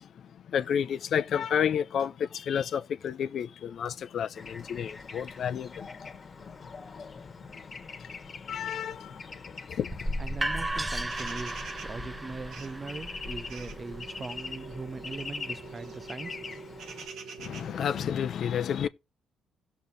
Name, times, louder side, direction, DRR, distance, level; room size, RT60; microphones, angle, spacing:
voice 1, 0.1-10.1 17.4-18.9, left 8 dB, 65° left, 0.5 m, -32 dB
Bird / Traffic noise roadway noise, 4.3-17.1, left 4 dB, 35° left, 1.4 m, -43 dB
sound 1, 9.9-15.7, right 1 dB, 15° right, 0.8 m, -36 dB
voice 2, 10.2-16.4, right 3 dB, 30° right, 0.4 m, -40 dB
sound 2, 11.1-18.1, right 5 dB, 80° right, 1.3 m, -45 dB
16.5 x 6.6 x 2.7 m
cardioid pair, 90°, 0 cm